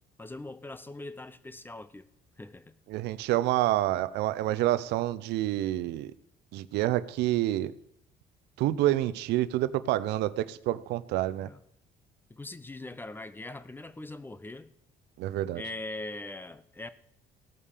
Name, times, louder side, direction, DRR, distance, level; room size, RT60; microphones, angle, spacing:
voice 1, 0.2-2.1 2.4-2.7 11.4-11.6 12.3-14.7 15.5-16.9, left 2 dB, 10° left, 0.6 m, -41 dB
voice 2, 2.9-6.1 6.5-7.7 8.6-11.5 15.2-15.6, right 14 dB, 85° right, 0.6 m, -28 dB
16.5 x 5.5 x 6.6 m
cardioid pair, 110°, 17 cm